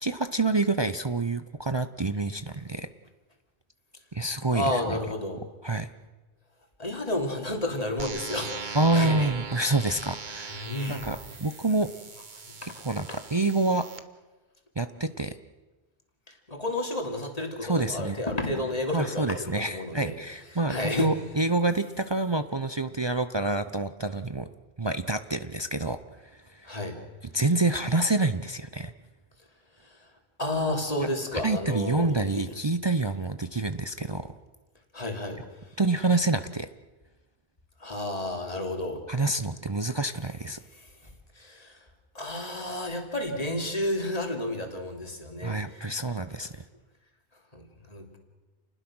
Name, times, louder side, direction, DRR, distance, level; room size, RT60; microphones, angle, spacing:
voice 1, 0.0-2.9 4.1-4.8 5.6-5.9 8.7-11.9 12.6-13.9 14.8-15.4 17.6-18.2 18.9-24.5 24.8-26.0 26.5-26.7 27.3-28.9 31.4-34.3 35.8-36.7 39.1-40.6 45.4-46.6, right 2 dB, 30° right, 10 dB, 0.7 m, -27 dB
voice 2, 4.5-5.4 6.8-9.3 10.6-11.4 12.6-13.2 14.9-15.0 16.3-20.2 20.7-21.1 26.6-27.0 29.8-30.1 30.4-32.4 34.9-35.8 37.8-39.0 40.7-41.8 42.1-46.0 47.5-48.2, left 1 dB, 35° left, 2 dB, 3.2 m, -32 dB
sound 1, 8.0-14.0, right 4 dB, 45° right, 1.3 m, -40 dB
29.5 x 20.0 x 6.2 m, 1.2 s
omnidirectional pair, 1.1 m